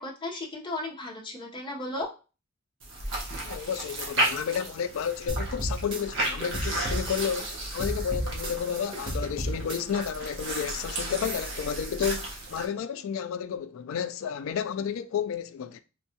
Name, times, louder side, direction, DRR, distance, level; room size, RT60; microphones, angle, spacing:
voice 1, 0.0-2.1, left 2 dB, 25° left, 0.7 m, -35 dB
sound 1, 2.8-12.7, right 1 dB, 60° right, 1.0 m, -34 dB
voice 2, 3.4-15.8, left 8 dB, 65° left, 0.3 m, -31 dB
sound 2, 5.3-7.5 7.8-10.1, right 1 dB, 25° right, 0.7 m, -33 dB
3.5 x 2.3 x 2.7 m
head